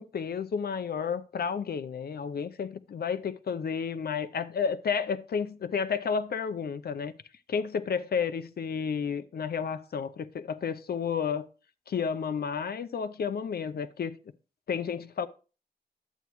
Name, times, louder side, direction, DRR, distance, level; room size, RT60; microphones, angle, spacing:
voice 1, 0.0-7.1 7.5-11.4 11.9-14.1 14.7-15.3, left 6 dB, 85° left, 0.6 m, -31 dB
11.0 x 8.1 x 3.1 m
wide cardioid pair, 110°, 16 cm